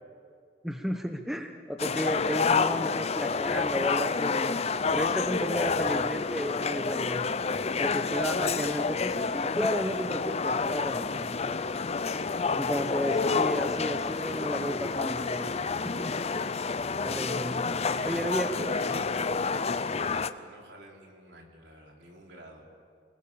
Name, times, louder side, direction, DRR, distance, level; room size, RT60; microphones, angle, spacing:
voice 1, 0.6-4.6 4.9-7.4 7.8-11.3 12.1-15.5 15.8-16.4 17.0-17.6 18.0-18.8, equal, ahead, 4 dB, 1.0 m, -33 dB
sound 1, 1.8-20.3, left 4 dB, 35° left, 0.6 m, -29 dB
voice 2, 17.9-19.1 19.3-22.7, right 1 dB, 70° right, 0 dB, 4.0 m, -49 dB
28.5 x 20.0 x 7.2 m, 2.2 s
head